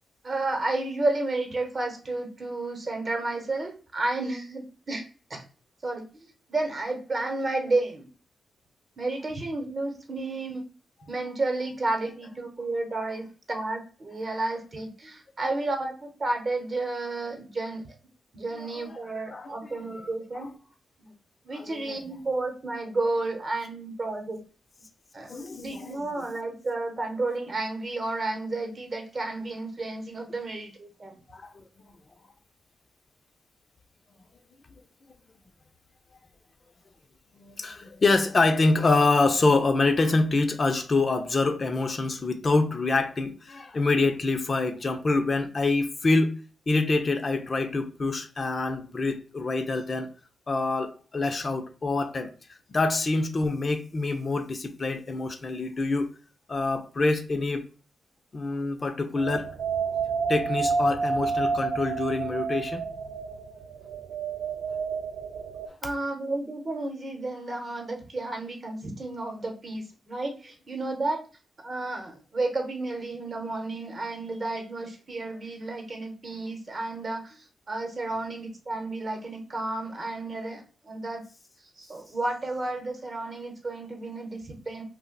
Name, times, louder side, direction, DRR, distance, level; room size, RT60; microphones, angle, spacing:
voice 1, 0.2-5.4 5.8-8.1 9.0-10.6 11.1-17.8 18.3-20.5 21.0-21.1 21.4-24.4 25.1-25.3 25.6-31.2 65.8-71.2 71.6-81.2 81.8-84.8, right 2 dB, 45° right, 0.8 m, -32 dB
voice 2, 18.6-19.0 19.3-20.1 21.5-22.0 25.3-26.3 31.3-31.6 37.4-46.3 46.7-50.1 50.5-52.3 52.7-56.1 56.5-57.7 58.3-59.5 60.3-62.8, left 3 dB, 45° left, 0.5 m, -26 dB
sound 1, 59.2-65.7, right 4 dB, 85° right, 0.4 m, -30 dB
2.4 x 2.1 x 3.8 m
cardioid pair, 75°, 0 cm